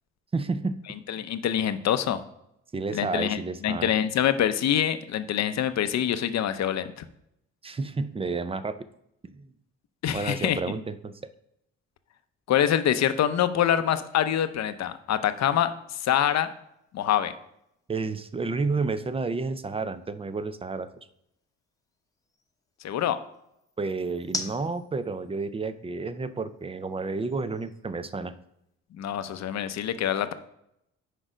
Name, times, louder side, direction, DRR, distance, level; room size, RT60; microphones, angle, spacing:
voice 1, 0.3-0.8 2.7-3.9 7.6-8.9 9.2-9.5 10.1-11.1 17.9-20.9 23.8-28.3, right 4 dB, 20° right, 13 dB, 0.5 m, -31 dB
voice 2, 1.1-2.2 2.9-7.0 10.0-10.6 12.5-16.5 16.9-17.3 22.8-23.2 29.0-30.3, left 10 dB, 60° left, 11 dB, 0.7 m, -25 dB
sound 1, 14.5-28.8, left 2 dB, 10° left, 0.9 m, -46 dB
6.4 x 5.0 x 5.0 m, 0.79 s
cardioid pair, 90°, 30 cm